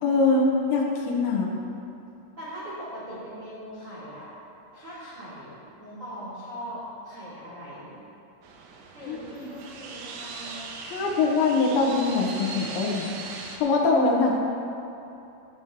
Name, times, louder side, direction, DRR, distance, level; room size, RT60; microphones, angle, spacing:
voice 1, 0.0-1.5 9.0-9.5 10.8-13.1 13.6-14.4, left 3 dB, 70° left, -1 dB, 3.2 m, -23 dB
voice 2, 2.4-4.3 4.7-8.0 8.9-10.6, equal, 30° right, -11 dB, 3.3 m, -40 dB
sound 1, 8.4-13.6, right 4 dB, 80° right, 3.5 m, -39 dB
16.0 x 12.5 x 3.1 m, 2.8 s
omnidirectional pair, 5.9 m